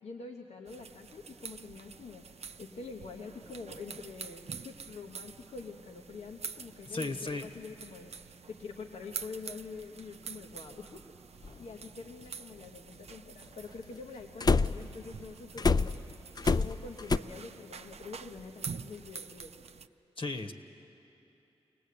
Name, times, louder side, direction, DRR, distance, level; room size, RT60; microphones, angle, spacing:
voice 1, 0.0-11.0 11.3-16.0 16.5-19.5, left 4 dB, 90° left, 1 dB, 1.1 m, -46 dB
sound 1, 0.7-19.9, right 6 dB, 75° right, 0.6 m, -47 dB
voice 2, 6.9-7.5 20.2-20.5, left 3 dB, 55° left, 4 dB, 1.3 m, -35 dB
sound 2, 11.4-11.5 14.4-15.0 15.6-17.2, left 4 dB, 40° left, 0.4 m, -26 dB
22.5 x 18.5 x 8.5 m, 2.9 s
cardioid pair, 45°, 11 cm